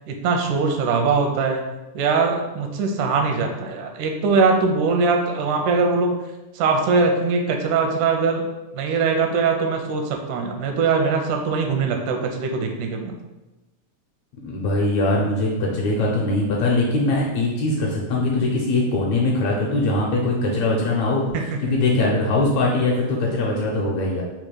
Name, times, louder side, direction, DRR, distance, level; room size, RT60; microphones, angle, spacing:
voice 1, 0.1-1.6 1.9-6.2 6.5-8.4 8.7-13.2 21.3-21.8, right 4 dB, 85° right, 3 dB, 2.0 m, -21 dB
voice 2, 14.4-21.2 21.6-24.2, left 2 dB, 75° left, -3 dB, 1.8 m, -21 dB
5.3 x 2.2 x 4.6 m, 1.0 s
omnidirectional pair, 3.6 m